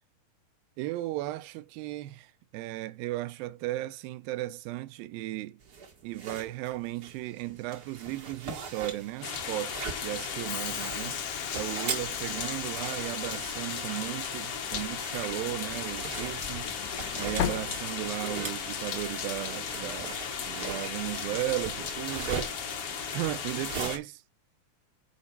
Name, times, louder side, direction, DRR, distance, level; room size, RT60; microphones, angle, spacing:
voice 1, 0.8-5.6 6.0-11.2 11.5-16.7 17.2-22.5 23.1-24.2, right 16 dB, 85° right, 2.3 m, -35 dB
sound 1, 5.6-24.0, right 5 dB, 70° right, 0.9 m, -42 dB
sound 2, 9.2-24.0, left 6 dB, 60° left, 1.5 m, -36 dB
Train / Sliding door, 10.5-18.4, left 11 dB, 90° left, 2.7 m, -39 dB
8.4 x 4.3 x 5.5 m
omnidirectional pair, 4.2 m